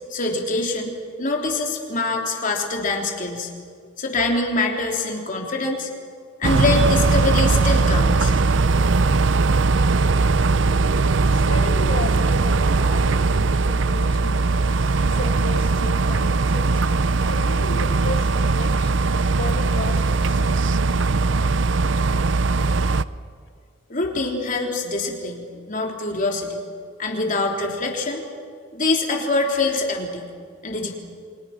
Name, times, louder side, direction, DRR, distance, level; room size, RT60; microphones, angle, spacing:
voice 1, 0.1-3.5 4.0-5.9 6.4-8.3 23.9-26.6 27.0-28.2 28.7-30.3 30.6-31.0, left 2 dB, 45° left, 1 dB, 3.5 m, -24 dB
sound 1, 6.4-23.0, right 3 dB, 70° right, 0.6 m, -19 dB
voice 2, 10.6-14.4 15.1-20.6, left 2 dB, 75° left, 6 dB, 1.7 m, -34 dB
30.0 x 24.5 x 6.0 m, 2.1 s
head